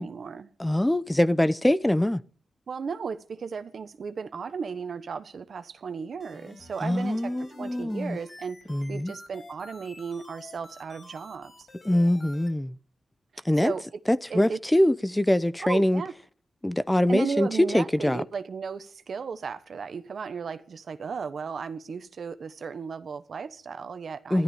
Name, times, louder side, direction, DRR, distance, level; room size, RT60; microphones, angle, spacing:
voice 1, 0.0-0.5 2.7-8.6 8.9-11.7 13.3-13.8 14.3-14.6 15.6-16.1 17.1-24.4, right 6 dB, 70° right, 1.1 m, -35 dB
voice 2, 0.6-2.2 6.8-8.2 8.7-9.1 11.8-12.7 13.4-13.7 14.1-16.0 16.6-17.5 17.7-18.2 24.3-24.4, left 1 dB, 10° left, 0.7 m, -23 dB
sound 1, 6.2-12.5, left 1 dB, 50° left, 6.6 m, -49 dB
13.0 x 12.5 x 7.1 m
cardioid pair, 65°, 0 cm